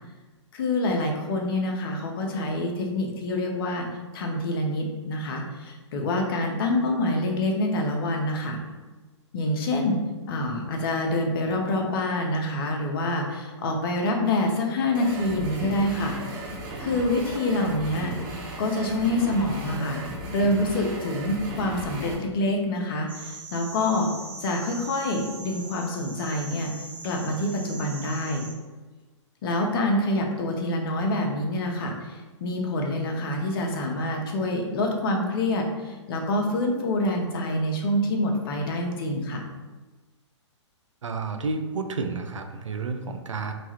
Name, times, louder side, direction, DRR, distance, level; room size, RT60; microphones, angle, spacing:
voice 1, 0.5-3.9 4.1-8.6 9.3-10.0 10.3-16.5 16.8-18.1 18.6-24.1 24.4-26.7 27.0-28.4 29.4-39.4, left 1 dB, 50° left, 2 dB, 0.6 m, -26 dB
sound 1, 14.9-22.1, right 1 dB, 40° right, 0.8 m, -36 dB
sound 2, 23.1-28.5, right 2 dB, 10° right, 0.4 m, -41 dB
voice 2, 41.0-43.5, right 4 dB, 90° right, 6 dB, 0.4 m, -30 dB
3.0 x 2.3 x 2.9 m, 1.3 s
hypercardioid pair, 120°, 16 cm